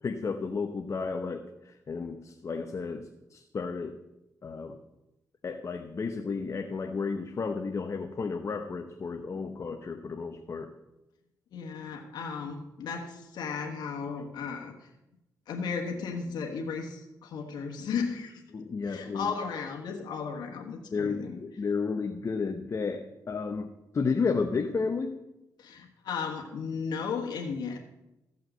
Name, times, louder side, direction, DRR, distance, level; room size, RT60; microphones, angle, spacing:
voice 1, 0.0-4.0 4.4-4.8 5.4-10.7 18.5-19.3 20.9-25.2, left 4 dB, 45° left, 5 dB, 0.9 m, -32 dB
voice 2, 11.5-14.9 15.5-18.4 18.8-21.3 25.6-27.8, left 5 dB, 90° left, 1 dB, 1.4 m, -35 dB
14.5 x 5.6 x 7.7 m, 0.94 s
cardioid pair, 90°, 7 cm